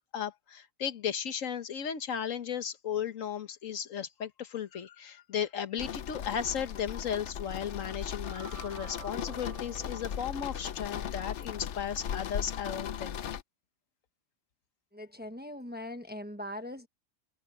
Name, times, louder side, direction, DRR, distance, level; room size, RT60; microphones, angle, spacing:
voice 1, 0.1-13.2, left 8 dB, 90° left, 1.5 m, -35 dB
sound 1, 5.8-13.4, left 9 dB, 65° left, 1.0 m, -38 dB
sound 2, 7.9-11.4, right 4 dB, 30° right, 0.9 m, -50 dB
voice 2, 14.9-16.9, left 1 dB, 10° right, 1.1 m, -41 dB
omnidirectional pair, 1.3 m